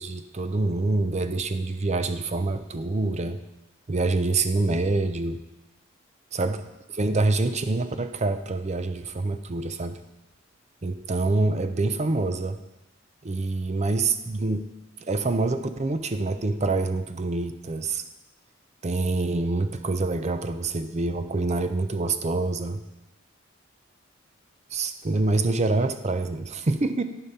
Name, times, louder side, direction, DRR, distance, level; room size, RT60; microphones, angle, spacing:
voice 1, 0.0-3.4 3.9-5.4 6.4-6.6 6.9-10.0 10.8-12.6 13.2-14.7 15.0-18.0 18.8-22.8 24.7-27.0, right 3 dB, 35° right, 9 dB, 0.6 m, -26 dB
13.5 x 5.4 x 4.2 m, 0.98 s
head